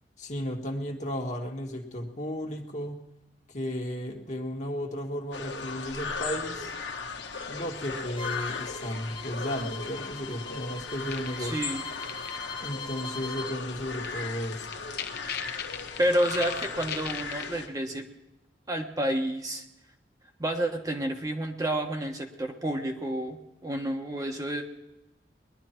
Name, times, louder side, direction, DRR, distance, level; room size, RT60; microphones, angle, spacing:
voice 1, 0.2-3.0 3.5-6.7 7.5-11.6 12.6-14.7, equal, 40° left, 2 dB, 1.7 m, -34 dB
sound 1, 5.3-17.7, left 4 dB, 85° left, 1.4 m, -37 dB
Bowed string instrument, 8.2-13.6, left 3 dB, 25° left, 0.8 m, -41 dB
sound 2, 11.1-11.3 12.0-12.3 14.0-14.1 14.4-14.5 14.7-17.4, left 9 dB, 60° left, 1.0 m, -35 dB
voice 2, 11.4-11.8 16.0-18.1 18.7-19.6 20.4-24.6, right 1 dB, 20° right, 3 dB, 1.2 m, -29 dB
20.0 x 11.5 x 4.5 m, 0.92 s
head